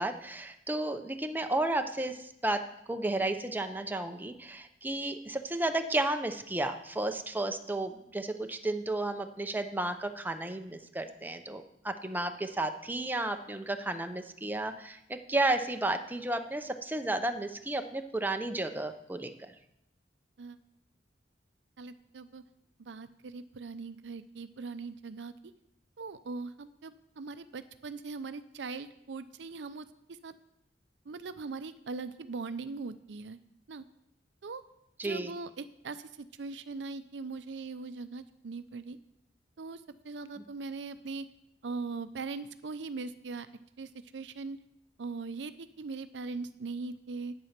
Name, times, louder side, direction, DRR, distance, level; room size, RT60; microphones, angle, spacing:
voice 1, 0.0-2.6 2.9-19.5 35.0-35.3, right 2 dB, 10° right, 6 dB, 0.7 m, -33 dB
voice 2, 21.8-22.4 22.8-25.5 26.0-30.3 31.1-33.4 33.7-33.8 34.4-34.6 35.0-39.0 39.6-41.3 41.6-43.5 43.8-44.6 45.0-47.3, right 4 dB, 80° right, 12 dB, 0.5 m, -40 dB
8.9 x 8.2 x 5.9 m, 0.80 s
head